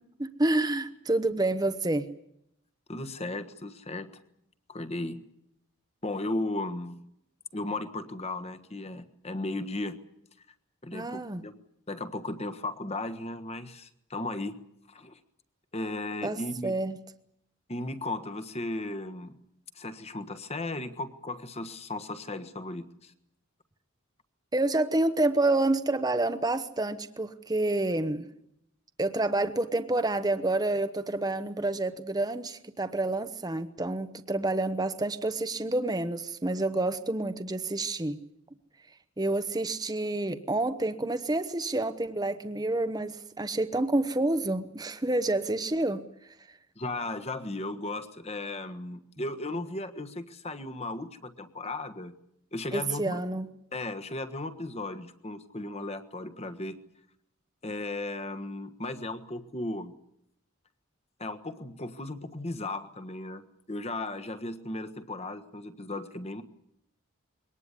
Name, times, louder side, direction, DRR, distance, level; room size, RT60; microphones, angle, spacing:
voice 1, 0.2-2.1 10.9-11.4 16.2-17.0 24.5-28.3 29.0-38.2 39.2-46.0 52.7-53.5, right 2 dB, 20° right, 9 dB, 0.9 m, -28 dB
voice 2, 2.9-4.2 4.7-5.2 6.0-7.1 7.5-10.0 10.8-11.5 11.9-14.6 14.9-15.2 15.7-16.7 17.7-19.4 19.7-23.1 46.8-52.1 52.5-53.2 53.7-56.8 57.6-59.9 61.2-66.4, left 2 dB, 30° left, 10 dB, 1.4 m, -36 dB
22.5 x 19.0 x 9.8 m, 0.76 s
head